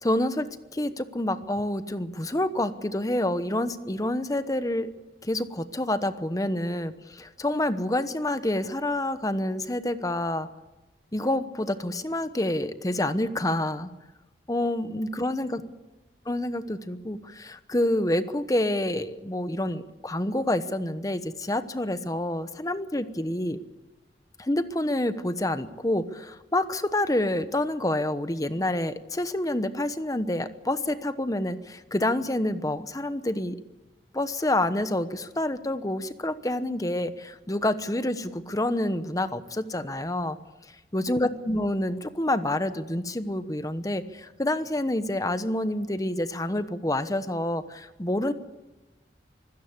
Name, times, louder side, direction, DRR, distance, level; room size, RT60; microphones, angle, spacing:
voice 1, 0.0-4.9 5.2-10.5 11.1-13.9 14.5-15.6 16.3-23.6 24.4-33.6 34.1-40.4 40.9-48.3, left 1 dB, 20° left, 11 dB, 1.0 m, -28 dB
24.5 x 16.5 x 8.1 m, 1.0 s
head